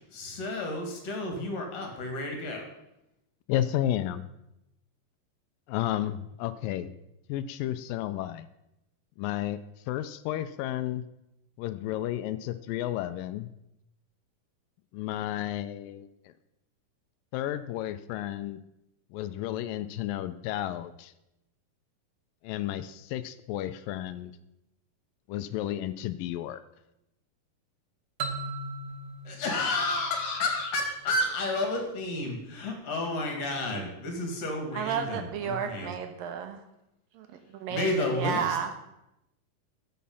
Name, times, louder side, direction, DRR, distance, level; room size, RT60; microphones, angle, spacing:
voice 1, 0.1-2.7 29.2-35.9 37.7-38.6, left 2 dB, 50° left, 2 dB, 3.1 m, -31 dB
voice 2, 3.5-4.3 5.7-6.9 7.3-8.5 9.2-9.6 9.9-11.0 11.6-13.5 14.9-16.3 17.3-18.6 19.1-21.1 22.4-24.3 25.3-26.6, left 12 dB, 80° left, 12 dB, 2.3 m, -32 dB
sound 1, 28.2-30.9, right 3 dB, 65° right, 2.0 m, -38 dB
voice 3, 34.7-36.6 37.1-38.7, right 7 dB, 80° right, 6 dB, 2.9 m, -32 dB
13.0 x 8.5 x 5.5 m, 0.87 s
omnidirectional pair, 4.0 m